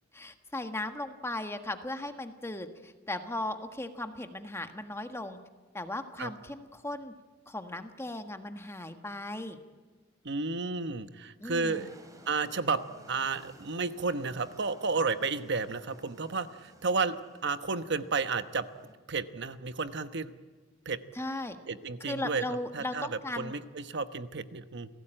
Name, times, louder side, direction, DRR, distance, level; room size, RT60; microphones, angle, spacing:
voice 1, 0.1-5.4 5.7-7.1 7.5-9.6 11.4-12.0 21.1-21.6 22.0-23.5, left 1 dB, 15° left, 7 dB, 1.5 m, -37 dB
voice 2, 10.2-11.9 12.3-12.8 13.1-18.7 19.1-20.3 20.8-21.0 21.7-22.4 22.7-23.1 23.4-24.9, right 4 dB, 60° right, 11 dB, 1.1 m, -32 dB
sound 1, 11.5-18.9, right 1 dB, 20° right, 3.2 m, -56 dB
29.0 x 17.5 x 9.0 m, 1.4 s
head